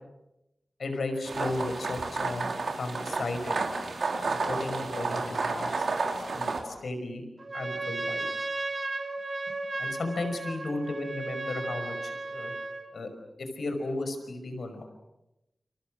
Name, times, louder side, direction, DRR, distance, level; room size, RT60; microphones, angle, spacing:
voice 1, 0.8-2.5 2.8-3.6 4.3-5.9 6.4-7.2 7.5-8.2 9.8-12.5 12.9-13.1 13.4-14.9, left 2 dB, 85° left, 7 dB, 5.5 m, -34 dB
sound 1, 1.3-6.6, right 3 dB, 80° right, 3.9 m, -31 dB
Trumpet, 7.4-12.9, right 2 dB, 45° right, 3.7 m, -35 dB
29.5 x 28.0 x 6.5 m, 0.91 s
wide cardioid pair, 95°, 0 cm